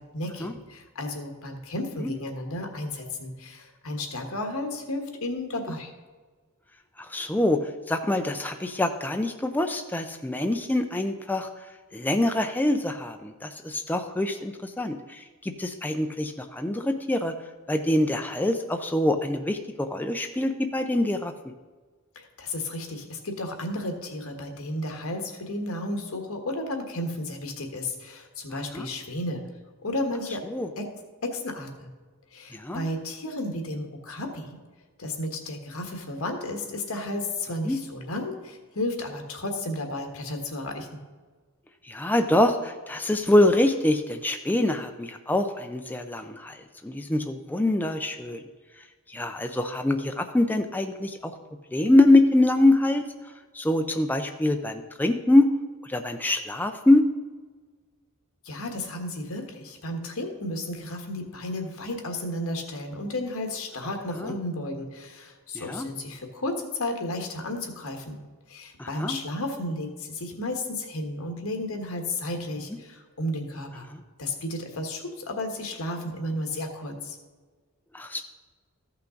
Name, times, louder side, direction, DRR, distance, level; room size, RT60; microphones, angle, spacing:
voice 1, 0.0-5.9 22.1-29.4 29.8-30.4 30.8-30.9 31.2-31.9 32.3-34.6 35.0-40.9 58.4-68.2 68.5-73.9 74.2-77.1, left 1 dB, 75° left, 3 dB, 1.5 m, -33 dB
voice 2, 7.0-7.6 7.9-11.5 11.9-17.3 17.7-21.3 28.7-28.9 30.5-30.7 32.5-32.8 37.6-37.8 41.9-48.4 49.1-51.3 51.7-53.0 53.5-55.5 55.8-57.0 64.2-64.3 65.5-65.9 68.8-69.2 73.9-74.0 77.9-78.2, left 1 dB, 10° left, 5 dB, 0.4 m, -24 dB
14.0 x 5.7 x 3.9 m, 1.4 s
head